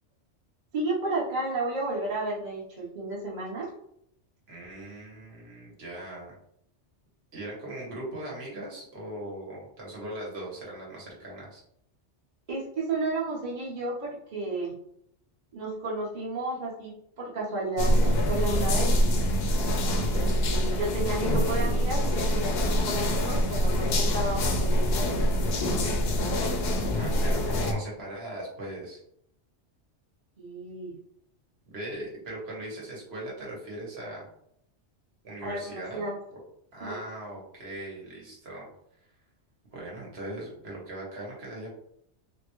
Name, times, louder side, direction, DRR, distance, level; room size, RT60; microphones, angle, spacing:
voice 1, 0.7-3.7 12.5-14.8 15.5-18.9 20.1-25.1 30.4-31.0 35.4-36.1 36.8-37.0, right 2 dB, 40° right, -5 dB, 0.9 m, -32 dB
voice 2, 4.5-6.4 7.3-11.6 26.9-29.0 31.6-34.3 35.2-36.0 36.3-36.4 36.7-38.7 39.7-41.7, right 1 dB, 60° right, -3 dB, 1.2 m, -39 dB
sound 1, 17.8-27.7, equal, 65° left, 0.7 m, -25 dB
3.5 x 2.1 x 3.0 m, 0.72 s
omnidirectional pair, 1.2 m